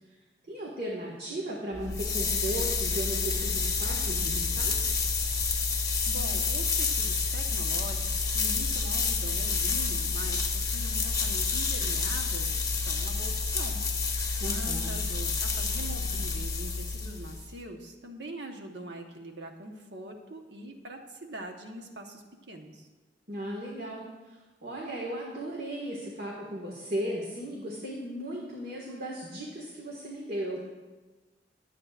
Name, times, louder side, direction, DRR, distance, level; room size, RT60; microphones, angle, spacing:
voice 1, 0.5-4.8 14.4-14.9 23.3-30.6, right 1 dB, 55° right, -3 dB, 1.8 m, -36 dB
sound 1, 1.7-17.5, left 4 dB, 20° left, 1.0 m, -29 dB
voice 2, 6.1-12.5 12.7-13.9 14.1-22.9, right 1 dB, 75° right, 3 dB, 1.2 m, -43 dB
21.5 x 8.6 x 2.5 m, 1.3 s
head